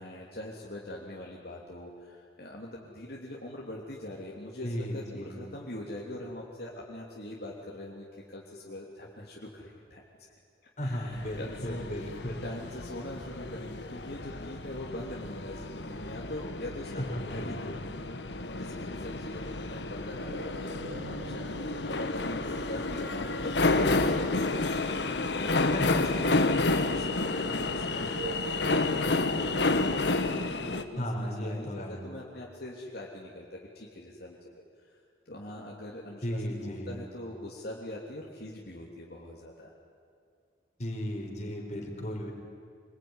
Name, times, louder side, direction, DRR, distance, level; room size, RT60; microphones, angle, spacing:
voice 1, 0.0-10.3 10.8-17.7 18.5-26.6 26.9-34.4 34.8-35.0 35.2-39.7, left 1 dB, 60° left, -3 dB, 3.1 m, -42 dB
voice 2, 4.6-5.4 10.8-12.4 16.9-17.8 25.7-26.2 31.0-32.0 36.2-36.9 40.8-42.3, equal, 40° left, 1 dB, 4.6 m, -35 dB
sound 1, 11.1-30.8, left 3 dB, 80° left, 1.5 m, -30 dB
sound 2, 19.9-31.2, right 2 dB, 85° right, 2.1 m, -46 dB
26.0 x 21.0 x 9.8 m, 2.3 s
head